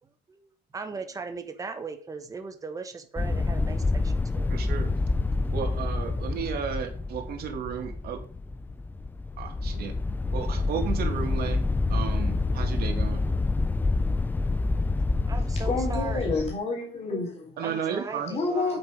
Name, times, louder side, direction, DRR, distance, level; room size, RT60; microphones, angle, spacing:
voice 1, 0.0-4.5 15.3-16.3 17.6-18.8, right 4 dB, 20° right, 1.4 m, -38 dB
sound 1, 3.2-16.5, left 3 dB, 10° left, 0.4 m, -27 dB
voice 2, 4.5-5.0 5.5-8.2 9.4-9.9 10.3-13.2 17.6-18.3, right 7 dB, 60° right, 2.6 m, -33 dB
voice 3, 15.6-17.5 18.3-18.8, left 3 dB, 35° left, 3.6 m, -29 dB
8.3 x 8.2 x 5.4 m
cardioid pair, 160°, 18 cm